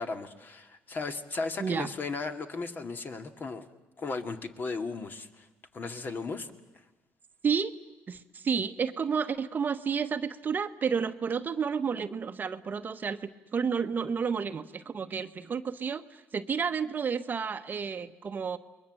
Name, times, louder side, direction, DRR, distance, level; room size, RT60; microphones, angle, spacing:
voice 1, 0.0-3.6 4.0-5.5 5.7-6.5, left 4 dB, 40° left, 6 dB, 2.1 m, -36 dB
voice 2, 1.6-1.9 7.4-7.7 8.1-18.6, right 6 dB, 35° right, 10 dB, 1.0 m, -31 dB
29.5 x 22.0 x 7.6 m, 1.1 s
cardioid pair, 95°, 5 cm